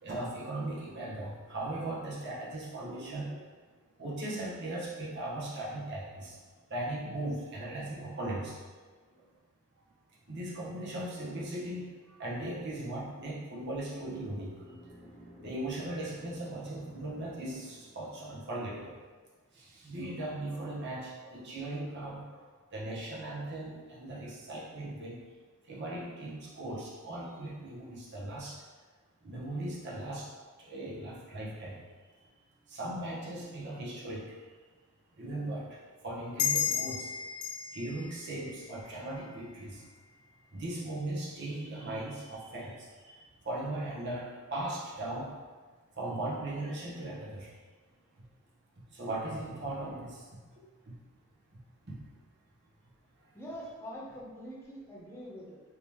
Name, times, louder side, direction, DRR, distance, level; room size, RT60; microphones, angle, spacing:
voice 1, 0.0-3.5 4.0-6.4 6.7-8.6 9.2-9.3 10.3-14.5 15.4-18.9 19.5-22.4 22.7-25.2 25.6-28.6 29.2-30.3 30.6-32.2 32.7-34.4 35.2-37.1 37.7-39.8 40.5-45.3 45.9-47.5 48.9-50.3 50.9-51.0 51.9-52.1 53.2-53.3, right 1 dB, 50° right, -6 dB, 0.9 m, -38 dB
sound 1, 13.4-18.4, equal, 30° left, 1.2 m, -54 dB
sound 2, 36.4-39.5, left 8 dB, 85° left, 0.4 m, -34 dB
voice 2, 53.3-55.6, equal, 10° left, -6 dB, 0.6 m, -44 dB
3.5 x 2.9 x 3.0 m, 1.4 s
head